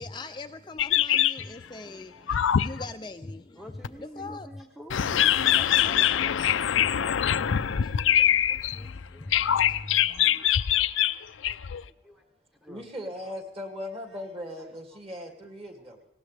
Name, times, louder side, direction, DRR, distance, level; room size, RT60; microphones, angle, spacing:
voice 1, 0.0-4.6 5.8-6.1 6.4-10.4, left 2 dB, 25° left, 0.4 m, -42 dB
sound 1, 0.8-1.6 2.3-2.8 3.8-3.9 4.9-9.0 9.3-11.8, left 10 dB, 90° left, 0.5 m, -23 dB
voice 2, 1.7-2.2 4.3-4.4 10.1-10.2 11.8-11.9 12.7-16.0, left 1 dB, 30° right, 2.4 m, -40 dB
voice 3, 3.6-6.6 7.7-7.9 8.4-10.2 10.7-10.9 11.1-11.6 12.0-12.2 12.6-12.9 14.9-15.0 15.8-15.9, equal, ahead, 0.9 m, -49 dB
19.5 x 17.5 x 3.4 m
head